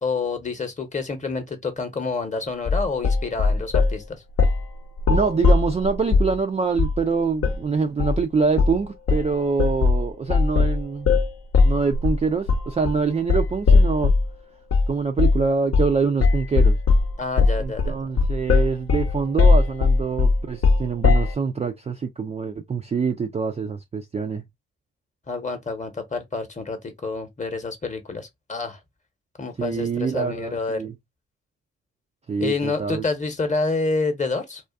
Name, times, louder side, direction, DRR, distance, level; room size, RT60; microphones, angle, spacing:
voice 1, 0.0-4.2 17.2-18.0 25.3-28.8 29.4-30.8 32.4-34.6, left 3 dB, 25° left, 1.0 m, -28 dB
sound 1, 2.7-4.0 4.4-4.7 5.0-6.4 6.8-7.0 7.4-7.6 8.0-8.2 8.6-8.8 9.1-14.3 14.7-14.9 15.2-15.5 15.7-16.0 16.2-21.3, left 4 dB, 45° left, 0.8 m, -19 dB
voice 2, 5.1-11.1 11.6-14.1 14.9-16.8 17.6-24.4 29.6-30.9 32.3-33.0, right 5 dB, 20° right, 0.4 m, -25 dB
2.4 x 2.4 x 2.3 m
hypercardioid pair, 50°, 32 cm